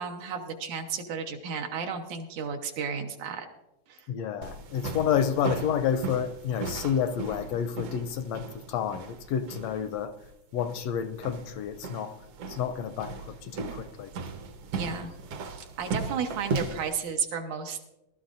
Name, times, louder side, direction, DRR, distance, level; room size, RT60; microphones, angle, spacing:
voice 1, 0.0-3.5 3.9-4.1 14.7-15.1 15.8-17.8, right 6 dB, 80° right, 3 dB, 2.5 m, -33 dB
voice 2, 4.1-10.2 10.5-12.2 12.5-14.1, left 8 dB, 80° left, 10 dB, 1.5 m, -30 dB
sound 1, 4.4-16.9, right 4 dB, 65° right, 1.8 m, -37 dB
20.0 x 12.5 x 2.6 m, 0.94 s
omnidirectional pair, 3.4 m